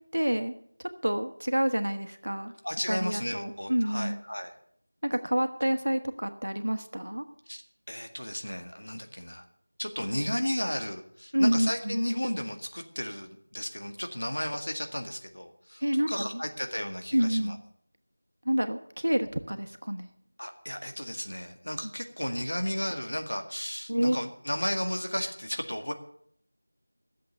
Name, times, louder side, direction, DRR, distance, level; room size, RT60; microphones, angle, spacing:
voice 1, 0.1-0.5 1.0-2.5 2.9-4.2 5.0-7.2 11.3-12.0 15.8-16.4 17.1-17.6 18.4-20.1 23.9-24.2, equal, 75° right, 8 dB, 1.4 m, -28 dB
voice 2, 2.6-4.5 7.5-9.4 9.8-17.6 20.4-25.9, equal, 75° left, 6 dB, 2.0 m, -34 dB
12.0 x 7.6 x 8.2 m, 0.66 s
figure-of-eight pair, 170°, 0 cm